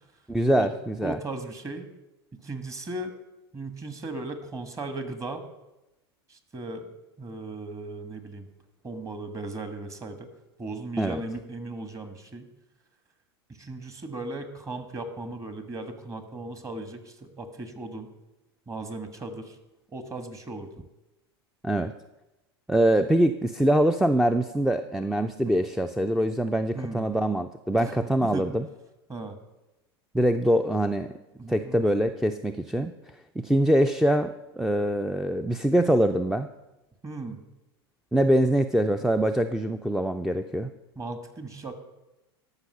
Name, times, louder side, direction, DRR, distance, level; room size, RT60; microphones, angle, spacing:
voice 1, 0.3-1.2 11.0-11.2 21.6-21.9 22.7-28.7 30.1-31.1 31.5-32.9 33.4-36.5 38.1-40.7, right 1 dB, 5° right, 4 dB, 0.4 m, -24 dB
voice 2, 1.0-1.9 2.3-3.1 3.5-5.4 6.3-6.9 7.2-8.5 8.8-10.3 10.6-12.5 13.5-18.1 18.7-19.6 19.9-20.8 25.4-25.5 26.7-27.1 27.8-28.5 29.1-29.4 31.4-31.8 37.0-37.4 40.9-41.7, right 2 dB, 25° right, 8 dB, 1.4 m, -37 dB
13.0 x 5.8 x 5.5 m, 0.98 s
hypercardioid pair, 95°, 13 cm